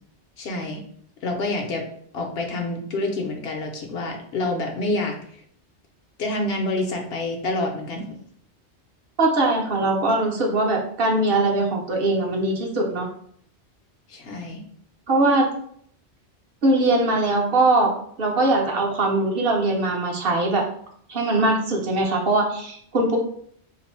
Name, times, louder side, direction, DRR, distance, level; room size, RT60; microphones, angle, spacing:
voice 1, 0.4-0.8 1.2-1.8 2.1-5.1 6.2-8.0 14.1-14.6, left 2 dB, 65° left, 2 dB, 0.8 m, -27 dB
voice 2, 9.2-13.1 15.1-15.5 16.6-17.9 18.2-20.6 21.1-23.2, right 2 dB, 60° right, 0 dB, 0.8 m, -21 dB
2.6 x 2.5 x 4.2 m, 0.63 s
omnidirectional pair, 1.2 m